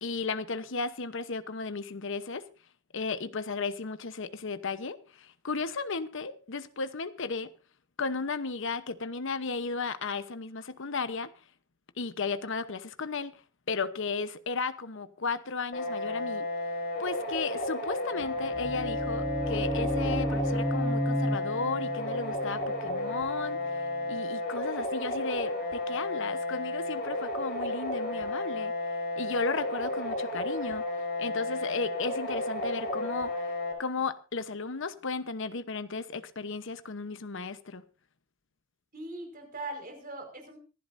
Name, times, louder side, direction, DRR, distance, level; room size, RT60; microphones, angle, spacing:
voice 1, 0.0-2.4 2.9-7.5 8.0-11.3 12.0-13.3 13.7-16.5 17.0-28.7 29.2-30.8 31.2-33.5 33.8-37.8, left 4 dB, 65° left, 0.9 m, -34 dB
sound 1, 15.7-33.7, left 2 dB, 50° left, 5.0 m, -33 dB
sound 2, 18.3-24.1, equal, 5° right, 0.6 m, -33 dB
voice 2, 38.9-40.6, right 2 dB, 45° right, 5.1 m, -41 dB
25.5 x 11.5 x 2.6 m
head